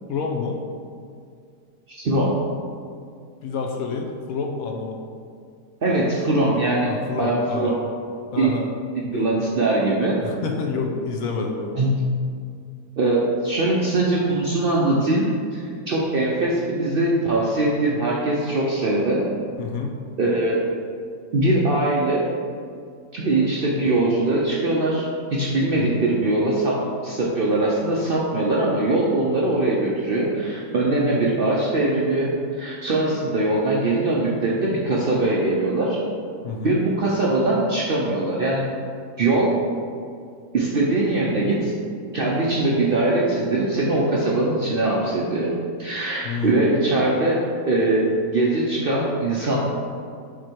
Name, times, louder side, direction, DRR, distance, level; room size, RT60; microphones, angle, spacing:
voice 1, 0.1-0.6 3.4-5.0 6.8-7.8 8.3-8.7 9.1-9.3 10.2-11.7 19.6-19.9 25.8-26.1 36.4-36.8 46.2-46.7, left 4 dB, 70° left, 2 dB, 1.0 m, -28 dB
voice 2, 1.9-2.4 5.8-6.9 7.2-7.8 8.4-8.6 9.0-10.2 11.8-12.0 13.0-19.2 20.2-20.6 21.3-22.2 23.1-36.0 36.6-38.6 39.2-39.6 40.5-41.7 42.1-45.5 45.8-47.4 47.7-49.6, right 2 dB, 55° right, -4 dB, 0.6 m, -21 dB
7.1 x 3.0 x 4.4 m, 2.2 s
omnidirectional pair, 1.6 m